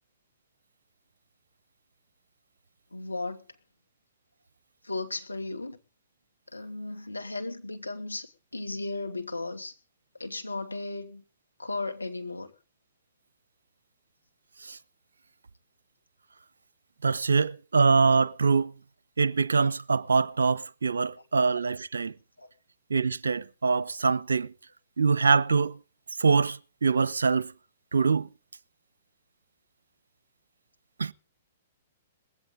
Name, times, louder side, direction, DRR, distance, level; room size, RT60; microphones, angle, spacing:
voice 1, 2.9-3.4 4.8-5.8 6.5-9.7 10.2-11.2 11.6-12.5 22.4-22.5, left 3 dB, 85° left, 2.5 m, -35 dB
voice 2, 17.0-18.7 19.2-22.1 22.9-24.5 25.0-25.8 26.2-27.5 27.9-28.3 31.0-31.1, right 4 dB, 70° right, 0.7 m, -24 dB
20.0 x 16.5 x 3.9 m
figure-of-eight pair, 115°, 0 cm